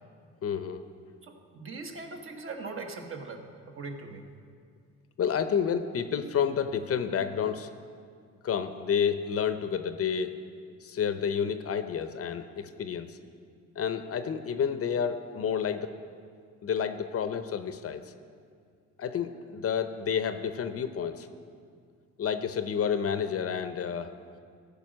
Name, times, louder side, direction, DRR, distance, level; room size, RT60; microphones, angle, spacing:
voice 1, 0.4-0.8 5.2-7.7 8.4-10.3 10.8-13.2 13.8-15.9 16.6-18.0 19.0-21.3 22.2-24.1, left 7 dB, 50° left, 10 dB, 0.6 m, -30 dB
voice 2, 1.2-4.2, right 3 dB, 45° right, 3 dB, 1.2 m, -40 dB
14.0 x 5.2 x 6.3 m, 2.2 s
cardioid pair, 90°, 30 cm